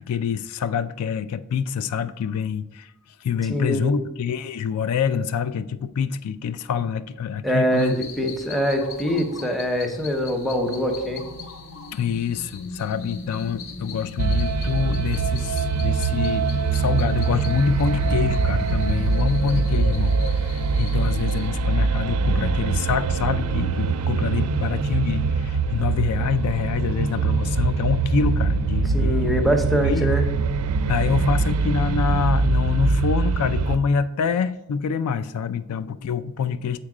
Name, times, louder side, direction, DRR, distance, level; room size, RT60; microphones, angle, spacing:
voice 1, 0.0-2.9 3.2-8.1 11.7-29.5 29.8-30.1 30.9-36.8, left 6 dB, 85° left, 0.4 m, -26 dB
voice 2, 3.5-4.0 7.4-11.2 28.9-30.2, equal, ahead, 0.7 m, -23 dB
sound 1, 7.7-21.5, left 3 dB, 65° left, 0.8 m, -39 dB
sound 2, 14.2-33.8, right 4 dB, 90° right, 0.4 m, -23 dB
7.4 x 4.4 x 4.8 m
head